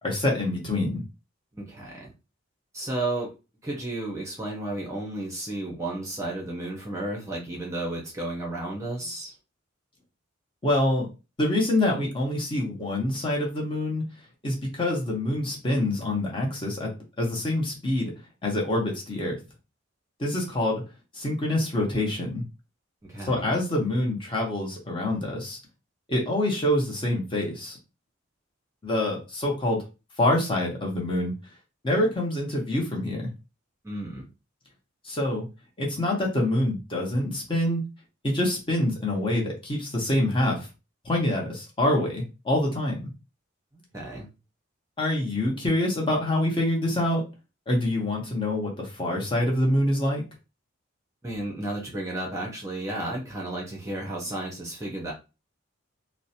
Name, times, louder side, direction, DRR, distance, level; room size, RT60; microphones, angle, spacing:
voice 1, 0.0-1.0 10.6-11.1 11.4-14.0 14.4-16.9 17.2-18.1 18.4-19.4 20.2-20.8 21.1-22.4 23.2-25.6 26.1-27.8 28.8-29.8 30.2-31.3 31.8-33.3 35.0-35.5 35.8-37.8 38.2-40.7 41.0-43.0 45.0-47.2 47.7-50.2, left 1 dB, 25° left, -2 dB, 0.7 m, -26 dB
voice 2, 1.5-2.1 2.7-3.3 3.6-9.3 23.0-23.5 33.8-34.3 43.7-44.3 51.2-55.1, right 1 dB, 15° right, -1 dB, 0.6 m, -33 dB
2.5 x 2.0 x 2.7 m, 0.29 s
head